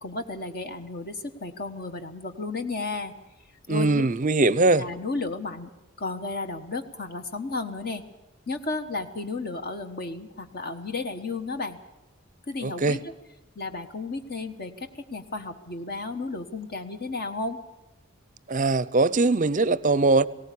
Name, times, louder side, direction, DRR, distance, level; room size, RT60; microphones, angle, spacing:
voice 1, 0.0-3.1 3.7-4.0 4.8-5.7 6.0-8.0 8.5-11.8 12.5-13.1 13.6-17.6, left 3 dB, 45° left, 1.3 m, -33 dB
voice 2, 3.7-4.8 12.6-13.0 18.5-20.2, right 3 dB, 35° right, 0.6 m, -21 dB
19.0 x 18.0 x 8.4 m
head